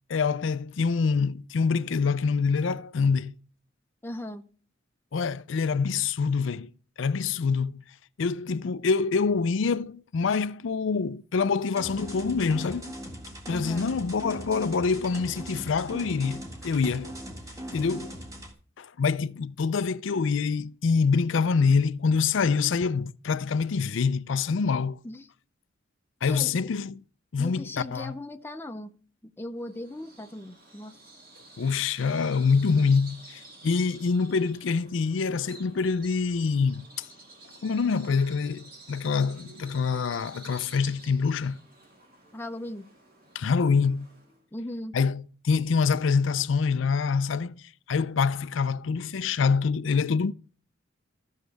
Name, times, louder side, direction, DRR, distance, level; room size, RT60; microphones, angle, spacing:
voice 1, 0.1-3.3 5.1-6.7 7.0-7.8 8.2-12.9 13.5-17.1 17.7-18.1 18.8-25.0 26.2-27.0 27.3-28.1 31.6-37.1 37.6-41.6 43.3-44.1 44.9-47.6 47.9-50.3, left 5 dB, 70° left, 0.4 m, -25 dB
voice 2, 4.0-4.4 13.5-13.9 25.0-25.3 26.3-26.5 27.4-28.9 29.2-31.0 42.3-42.9 44.5-45.0, left 1 dB, 10° left, 0.6 m, -38 dB
sound 1, 11.8-18.5, equal, 15° right, 1.7 m, -40 dB
Bird vocalization bird call bird song, 29.6-44.4, right 2 dB, 45° right, 3.2 m, -51 dB
14.0 x 6.4 x 3.4 m
head